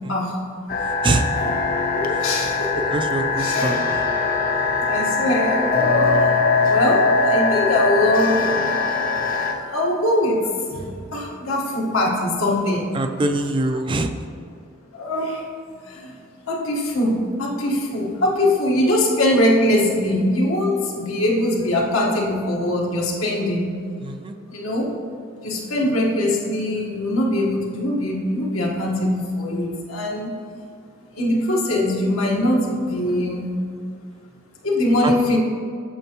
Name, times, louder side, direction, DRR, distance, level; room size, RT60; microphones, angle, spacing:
sound 1, 0.7-9.5, left 4 dB, 45° left, 0.6 m, -21 dB
voice 1, 1.9-2.9 3.4-3.7 4.8-6.4 6.7-8.5 9.5-13.0 13.7-13.8 14.9-15.4 15.8-16.1 16.5-23.7 24.5-24.9 25.4-30.3 31.1-33.5 34.6-35.4, left 1 dB, 85° left, -2 dB, 1.4 m, -22 dB
voice 2, 2.9-4.0 12.9-14.1 24.0-24.3 35.0-35.4, right 2 dB, 25° right, 7 dB, 0.3 m, -24 dB
8.5 x 6.5 x 3.0 m, 2.3 s
head